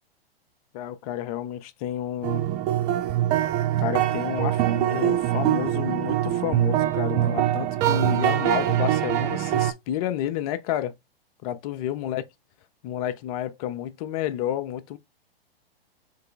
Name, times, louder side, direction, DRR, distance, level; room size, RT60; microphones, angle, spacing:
voice 1, 0.7-2.4 3.8-10.9 11.4-12.2 12.8-15.0, left 11 dB, 40° left, 0.6 m, -30 dB
sound 1, 2.2-9.7, right 12 dB, 25° right, 0.4 m, -23 dB
3.7 x 3.3 x 3.7 m
hypercardioid pair, 115°, 30 cm